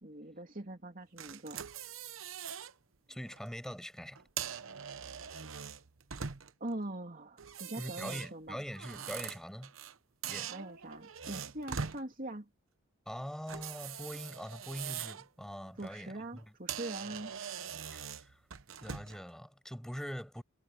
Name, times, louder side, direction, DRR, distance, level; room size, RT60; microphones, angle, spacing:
voice 1, 0.0-1.6 6.6-8.6 10.5-12.5 15.8-17.3, right 1 dB, 40° right, 2.9 m, -42 dB
sound 1, 1.2-2.7 3.2-3.4 4.2-6.7 7.4-10.0 10.2-12.0 13.5-15.3 15.7-15.9 16.4-16.5 16.7-19.2, right 7 dB, 75° right, 0.9 m, -42 dB
voice 2, 3.1-4.2 7.8-9.7 10.2-10.5 13.1-16.4 17.9-18.4 18.8-20.4, equal, ahead, 7.5 m, -43 dB
head